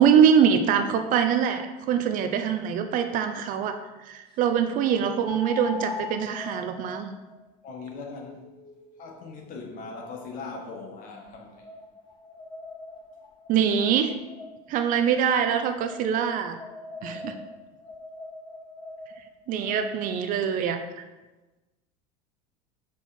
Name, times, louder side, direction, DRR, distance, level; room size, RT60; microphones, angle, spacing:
voice 1, 0.0-3.8 4.1-7.1 13.5-14.1 14.7-16.6 17.0-17.3 19.5-20.8, right 8 dB, 45° right, 8 dB, 0.5 m, -23 dB
sound 1, 2.6-2.7 5.2-10.4 11.1-14.8 15.8-20.4, left 3 dB, 25° left, 0.7 m, -42 dB
voice 2, 7.6-8.5 9.0-11.7 17.0-17.4, left 4 dB, 45° left, 2 dB, 1.3 m, -40 dB
5.5 x 4.6 x 4.3 m, 1.1 s
supercardioid pair, 130°, 19 cm